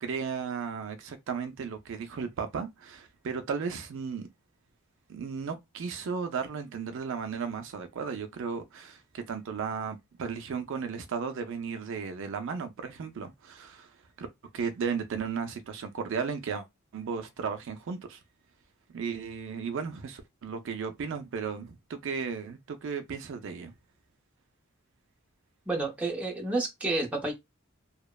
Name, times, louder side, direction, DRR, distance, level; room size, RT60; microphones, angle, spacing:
voice 1, 0.0-4.3 5.1-13.9 14.2-14.3 14.5-16.7 16.9-18.2 18.9-23.7, right 6 dB, 60° right, 0.4 m, -35 dB
voice 2, 25.7-27.3, right 2 dB, 5° right, 0.7 m, -30 dB
2.8 x 2.0 x 2.2 m
head